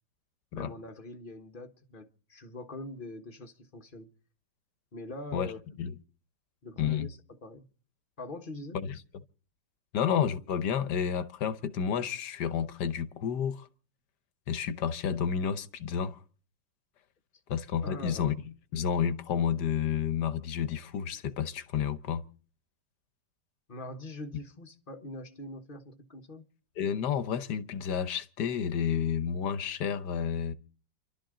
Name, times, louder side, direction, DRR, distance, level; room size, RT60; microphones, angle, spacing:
voice 1, 0.5-4.1 4.9-5.8 6.6-7.7 8.2-8.8 17.8-18.3 23.7-26.4, left 2 dB, 30° left, 1.4 m, -43 dB
voice 2, 6.8-7.1 8.7-9.0 9.9-13.7 14.5-16.2 17.5-18.3 18.7-22.2 26.8-30.5, left 8 dB, 70° left, 1.5 m, -30 dB
29.5 x 12.5 x 3.8 m
omnidirectional pair, 1.9 m